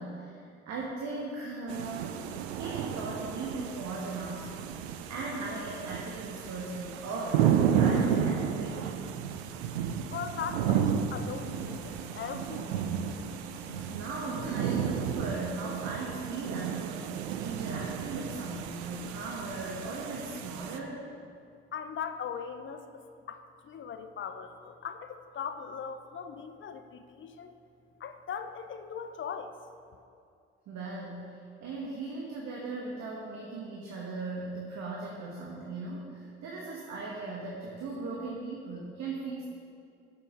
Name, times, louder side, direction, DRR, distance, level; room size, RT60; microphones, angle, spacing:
voice 1, 0.0-2.2 2.5-4.6 5.1-8.9 13.9-21.0 30.7-31.4 31.6-39.4, right 3 dB, 55° right, -3 dB, 1.2 m, -38 dB
sound 1, 1.7-20.8, right 8 dB, 75° right, 0.5 m, -32 dB
voice 2, 10.1-13.0 21.7-27.5 28.0-29.6, left 7 dB, 35° left, 9 dB, 0.6 m, -39 dB
sound 2, 11.0-15.8, equal, 75° left, 1.2 m, -49 dB
7.0 x 5.8 x 5.1 m, 2.4 s
figure-of-eight pair, 50°, 33 cm